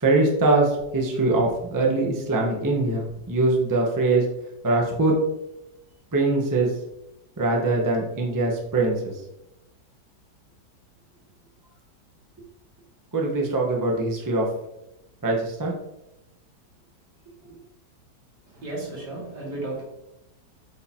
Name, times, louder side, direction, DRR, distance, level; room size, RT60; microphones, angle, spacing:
voice 1, 0.0-4.2 4.6-5.1 6.1-6.7 7.4-9.1 13.1-14.5 15.2-15.7, right 2 dB, 15° right, -2 dB, 0.7 m, -22 dB
voice 2, 18.6-19.8, right 2 dB, 70° right, -4 dB, 2.7 m, -33 dB
7.8 x 2.8 x 4.3 m, 0.91 s
omnidirectional pair, 1.9 m